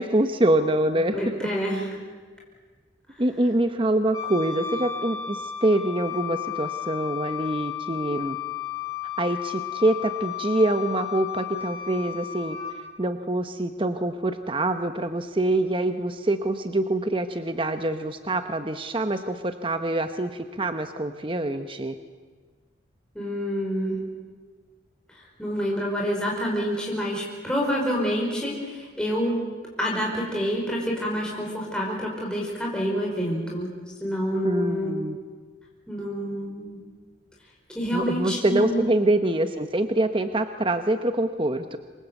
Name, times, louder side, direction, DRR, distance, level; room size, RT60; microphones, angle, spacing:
voice 1, 0.0-1.5 3.2-8.4 9.2-12.6 13.0-22.0 34.4-35.2 37.9-41.8, right 1 dB, 25° right, 8 dB, 0.9 m, -25 dB
voice 2, 1.1-2.1 3.1-3.2 23.1-24.0 25.1-29.3 29.8-33.7 34.0-34.9 35.9-36.8 37.7-38.8, equal, 5° left, -3 dB, 5.0 m, -28 dB
Wind instrument woodwind instrument, 4.1-12.8, left 10 dB, 20° left, 6.5 m, -33 dB
27.5 x 23.5 x 8.3 m, 1.5 s
head